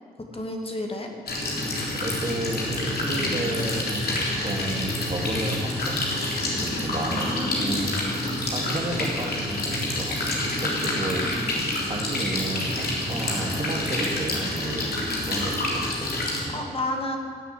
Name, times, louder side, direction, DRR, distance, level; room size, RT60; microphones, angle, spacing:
voice 1, 0.3-1.1 7.1-8.4 16.5-17.2, left 1 dB, 35° left, 2 dB, 2.5 m, -31 dB
sound 1, 1.3-16.4, left 1 dB, 70° left, 3.7 m, -28 dB
voice 2, 1.8-4.0 4.4-6.0 6.5-8.1 8.5-11.5 11.8-15.0 15.3-16.6, right 1 dB, 35° right, 1 dB, 2.5 m, -32 dB
16.0 x 6.9 x 9.4 m, 2.1 s
supercardioid pair, 50°, 17 cm